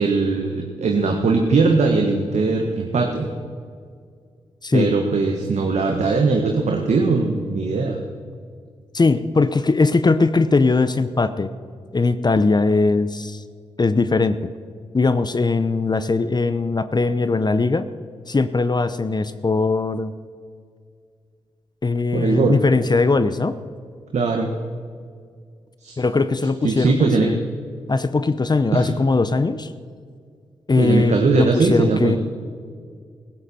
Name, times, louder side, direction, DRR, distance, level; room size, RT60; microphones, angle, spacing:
voice 1, 0.0-3.3 4.7-8.0 22.1-22.6 24.1-24.5 25.8-26.0 26.6-27.3 28.7-28.9 30.8-32.2, right 4 dB, 65° right, 3 dB, 1.5 m, -20 dB
voice 2, 8.9-11.5 11.9-13.4 13.8-14.4 14.9-17.9 18.3-20.1 21.8-23.6 26.0-26.9 27.2-27.4 27.9-29.7 30.7-32.2, left 3 dB, 35° left, 12 dB, 0.8 m, -20 dB
16.5 x 14.5 x 4.4 m, 2.1 s
supercardioid pair, 45°, 13 cm